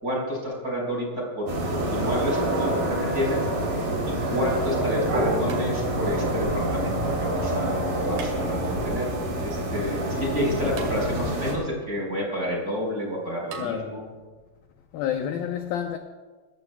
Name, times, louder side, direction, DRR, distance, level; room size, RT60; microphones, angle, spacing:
voice 1, 0.0-2.8 3.1-3.4 3.7-3.9 4.3-9.1 9.4-14.0, equal, 20° right, 4.6 m, -29 dB
sound 1, 1.5-11.5, right 1 dB, 45° right, 4.1 m, -27 dB
sound 2, 5.5-6.2 8.1-8.9 10.8-11.5 13.5-13.7, right 6 dB, 60° right, 3.5 m, -41 dB
voice 2, 13.6-14.1 14.9-16.0, left 9 dB, 80° left, 2.1 m, -29 dB
27.0 x 14.5 x 2.3 m
omnidirectional pair, 5.2 m